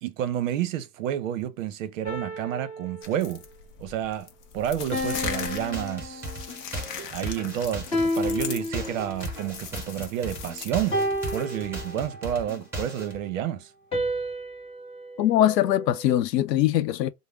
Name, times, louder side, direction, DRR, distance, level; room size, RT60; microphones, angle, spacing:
voice 1, 0.0-3.4 3.8-4.3 4.5-6.3 7.1-11.0 11.3-13.7, right 10 dB, 55° right, 0.7 m, -30 dB
sound 1, 2.0-3.5 4.9-6.7 7.9-9.4 10.9-12.4 13.9-16.2, left 1 dB, 10° left, 0.9 m, -31 dB
sound 2, 3.0-11.5, left 7 dB, 35° left, 0.5 m, -39 dB
sound 3, 5.2-13.2, right 1 dB, 5° right, 1.2 m, -37 dB
voice 2, 15.2-17.1, left 12 dB, 85° left, 0.6 m, -22 dB
3.4 x 2.0 x 3.5 m
hypercardioid pair, 145°, 48 cm